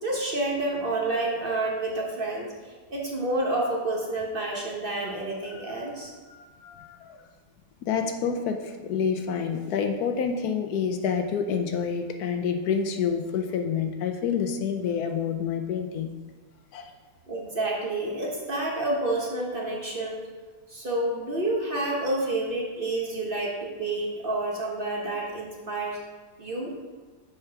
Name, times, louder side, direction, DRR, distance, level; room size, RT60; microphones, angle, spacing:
voice 1, 0.0-2.5 2.9-6.1 17.3-20.2 20.7-26.0 26.4-26.7, right 2 dB, 35° right, -2 dB, 1.2 m, -29 dB
voice 2, 5.6-7.2 7.8-16.1 16.7-16.9, left 6 dB, 75° left, 6 dB, 1.2 m, -28 dB
6.9 x 4.5 x 5.8 m, 1.4 s
omnidirectional pair, 1.7 m